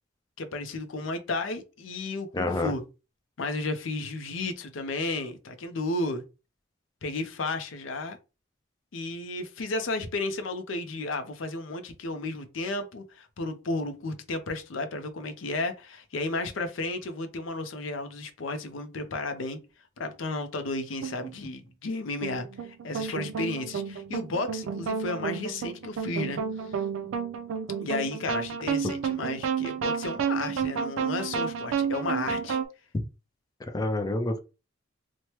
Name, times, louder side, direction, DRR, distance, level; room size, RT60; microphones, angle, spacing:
voice 1, 0.4-2.8 3.4-6.2 7.0-8.2 8.9-19.6 20.0-26.7 27.8-32.6, left 2 dB, 70° left, 0.5 m, -33 dB
voice 2, 2.3-2.7 33.7-34.4, left 2 dB, 20° left, 0.4 m, -27 dB
sound 1, 21.0-21.3 22.2-32.7, right 6 dB, 85° right, 0.4 m, -31 dB
3.1 x 2.1 x 2.9 m
head